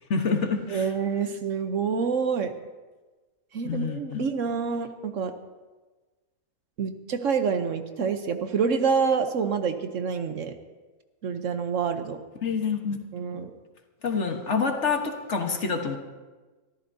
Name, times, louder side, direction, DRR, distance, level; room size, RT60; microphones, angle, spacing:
voice 1, 0.1-0.9 3.6-4.2 12.4-13.0 13.2-13.4 14.0-16.0, left 5 dB, 55° left, 5 dB, 1.5 m, -27 dB
voice 2, 0.7-2.5 3.5-5.3 6.8-10.5 11.2-12.2 13.1-13.5, right 6 dB, 65° right, 8 dB, 1.1 m, -27 dB
24.5 x 13.5 x 2.7 m, 1.3 s
omnidirectional pair, 1.5 m